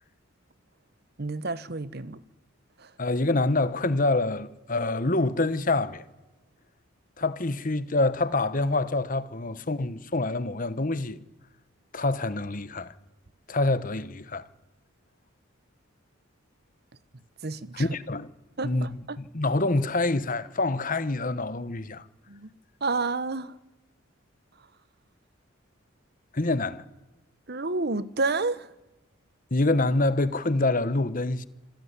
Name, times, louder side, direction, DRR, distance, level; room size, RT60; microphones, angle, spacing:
voice 1, 1.2-2.2 17.4-17.8 18.6-19.2 22.3-22.5 22.8-23.5 27.5-28.7, right 3 dB, 50° right, 1.0 m, -30 dB
voice 2, 3.0-6.0 7.2-11.2 11.9-12.9 13.5-14.5 17.7-18.3 18.6-22.0 26.3-26.8 29.5-31.5, left 2 dB, 40° left, 1.2 m, -26 dB
27.0 x 15.5 x 9.8 m
head